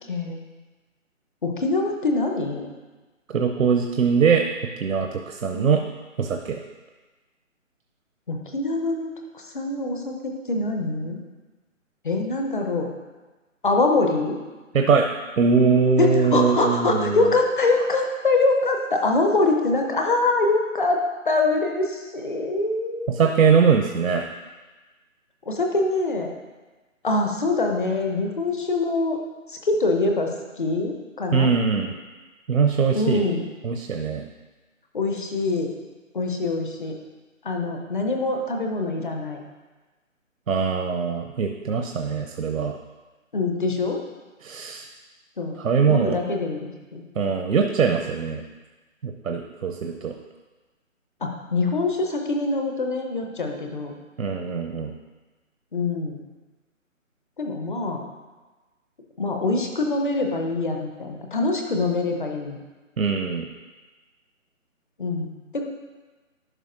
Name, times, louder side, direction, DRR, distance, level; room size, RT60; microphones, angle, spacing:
voice 1, 0.1-0.4 1.4-2.7 5.5-5.7 8.3-9.1 9.3-11.2 12.0-12.9 13.6-14.4 16.0-23.2 25.5-26.3 27.0-29.2 29.5-30.3 30.6-31.5 32.9-33.5 34.9-35.7 36.1-36.9 37.4-39.4 43.3-44.0 45.4-45.6 45.9-47.0 51.2-53.9 55.7-56.2 57.4-58.0 59.2-62.6 65.0-65.7, left 3 dB, 40° left, 3 dB, 0.8 m, -24 dB
voice 2, 3.3-4.5 4.8-5.8 6.2-6.6 14.7-15.1 15.4-17.3 23.2-24.2 31.3-31.9 32.5-33.2 33.6-34.2 40.5-42.8 44.4-44.9 45.6-46.2 47.2-48.4 49.0-50.1 54.2-54.9 63.0-63.5, right 5 dB, 80° right, 3 dB, 0.7 m, -21 dB
11.0 x 5.1 x 2.6 m, 1.2 s
figure-of-eight pair, 160°, 40 cm